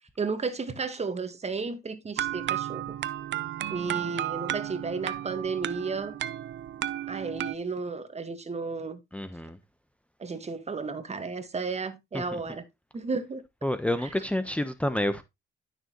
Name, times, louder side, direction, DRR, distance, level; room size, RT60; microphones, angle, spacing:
voice 1, 0.2-3.0 3.7-6.2 7.1-9.0 10.2-12.6 12.9-13.4 14.0-14.2, right 4 dB, 35° right, 1.7 m, -33 dB
sound 1, 2.2-7.5, right 12 dB, 65° right, 0.8 m, -33 dB
voice 2, 9.1-9.6 12.1-12.2 13.6-15.2, left 1 dB, 5° left, 1.0 m, -28 dB
12.0 x 6.6 x 3.1 m
cardioid pair, 90°, 20 cm